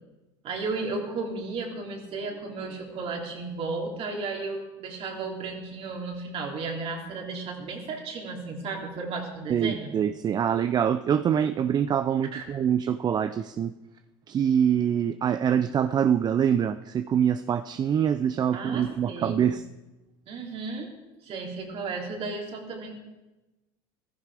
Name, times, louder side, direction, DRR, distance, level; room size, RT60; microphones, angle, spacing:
voice 1, 0.4-9.9 12.3-12.4 18.5-19.5 20.3-20.9 21.2-23.0, right 3 dB, 50° right, 1 dB, 3.4 m, -34 dB
voice 2, 9.5-13.7 14.3-19.6, right 8 dB, 35° right, 12 dB, 0.5 m, -25 dB
15.0 x 14.0 x 4.9 m, 1.1 s
supercardioid pair, 90°, 12 cm